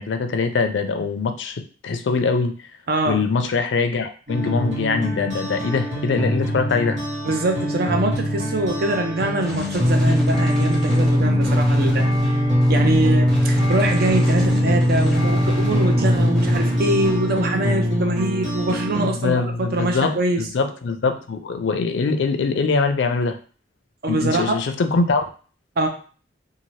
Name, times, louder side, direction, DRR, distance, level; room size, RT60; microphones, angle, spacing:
voice 1, 0.0-2.5 3.1-7.0 19.0-23.4 24.1-25.2, left 4 dB, 80° left, 7 dB, 0.4 m, -23 dB
voice 2, 2.9-3.2 7.2-12.4 12.7-20.5 24.0-24.6 25.8-25.9, right 1 dB, 55° right, 5 dB, 0.5 m, -23 dB
sound 1, 4.3-19.1, equal, 85° right, 1.3 m, -21 dB
Gunshot gunfire, 9.4-17.4, equal, ahead, 0.7 m, -36 dB
2.7 x 2.4 x 3.1 m, 0.39 s
head